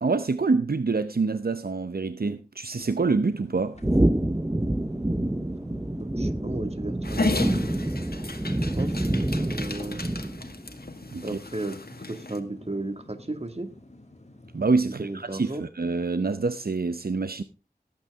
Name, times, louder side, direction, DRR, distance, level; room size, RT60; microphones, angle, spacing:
voice 1, 0.0-3.8 11.1-11.2 14.5-17.4, right 4 dB, 70° right, 0.7 m, -26 dB
sound 1, 2.7-15.7, left 1 dB, 45° left, 2.1 m, -49 dB
sound 2, 3.8-10.6, right 1 dB, 15° right, 0.7 m, -27 dB
voice 2, 6.2-7.5 8.8-8.9 9.3-10.0 11.2-11.8 12.1-13.7 14.9-15.6, right 2 dB, 40° right, 2.0 m, -34 dB
Dog, 7.0-12.4, left 3 dB, 75° left, 1.8 m, -34 dB
18.0 x 8.8 x 3.6 m
wide cardioid pair, 50°, 16 cm